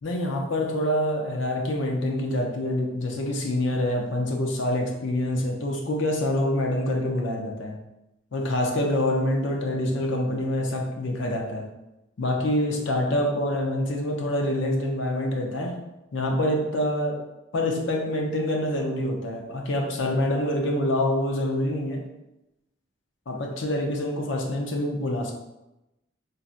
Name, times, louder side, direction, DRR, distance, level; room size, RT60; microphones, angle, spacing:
voice 1, 0.0-7.8 8.3-11.7 12.2-15.8 16.1-17.2 17.5-22.0 23.3-25.3, left 1 dB, 70° left, 1 dB, 0.6 m, -26 dB
3.9 x 2.2 x 2.5 m, 0.93 s
head